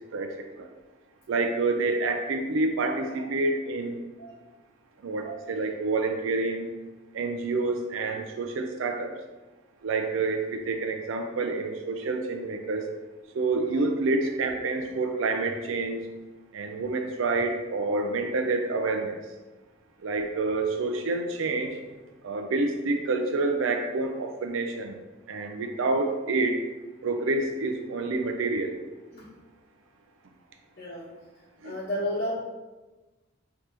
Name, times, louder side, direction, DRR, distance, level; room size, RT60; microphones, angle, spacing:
voice 1, 1.3-4.0 5.0-6.7 7.1-9.1 9.8-12.9 13.3-16.0 16.5-19.2 20.0-21.8 22.2-25.0 25.3-26.6 27.0-28.8 31.6-31.8, right 3 dB, 80° right, 4 dB, 0.4 m, -28 dB
voice 2, 30.8-31.1 31.6-32.3, left 1 dB, 50° left, -10 dB, 1.2 m, -32 dB
5.1 x 2.9 x 3.2 m, 1.2 s
head